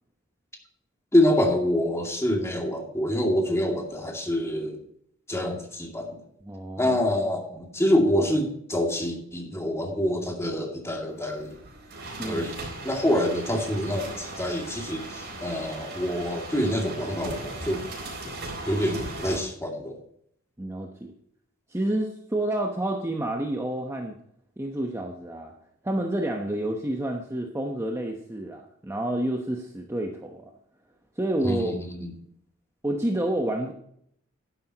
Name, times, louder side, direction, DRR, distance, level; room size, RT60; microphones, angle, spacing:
voice 1, 1.1-4.8 5.3-6.2 6.8-11.6 12.3-12.5 12.8-17.8 18.6-20.0 31.4-32.1, left 1 dB, 15° left, 1 dB, 2.3 m, -26 dB
voice 2, 6.4-7.0 12.2-12.5 20.6-21.1 21.7-24.1 24.6-25.5 25.8-30.5 31.2-31.8 32.8-33.7, right 1 dB, 15° right, 2 dB, 0.9 m, -29 dB
sound 1, 11.2-19.4, right 2 dB, 55° right, 4.2 m, -38 dB
11.5 x 10.5 x 2.9 m, 0.69 s
head